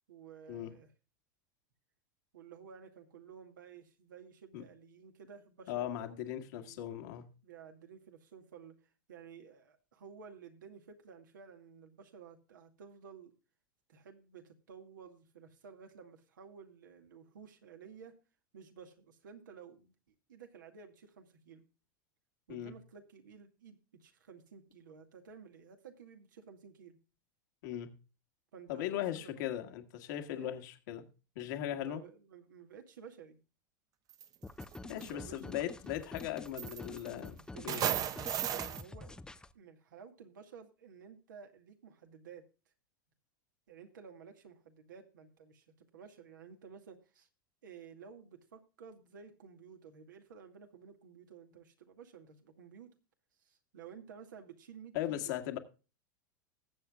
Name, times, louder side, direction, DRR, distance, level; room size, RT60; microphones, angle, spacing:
voice 1, 0.1-0.9 2.3-6.8 7.4-13.4 13.9-18.1 18.5-19.9 20.3-21.7 22.5-27.0 28.5-29.3 30.3-30.5 31.7-33.4 34.9-35.6 37.5-37.9 38.2-39.2 39.5-42.5 43.7-47.3 47.6-52.9 53.4-55.3, right 7 dB, 75° right, 2.1 m, -54 dB
voice 2, 5.7-7.3 22.5-22.7 27.6-28.0 28.7-31.1 31.4-32.0 34.9-37.9 54.9-55.6, left 12 dB, 65° left, 1.8 m, -38 dB
sound 1, 34.1-34.3 34.6-35.1 36.2-36.3 36.6-37.3 37.7-38.8, right 10 dB, 35° right, 0.9 m, -34 dB
sound 2, 34.4-39.5, left 2 dB, 5° left, 0.6 m, -48 dB
20.0 x 7.9 x 2.4 m
hypercardioid pair, 90°, 10 cm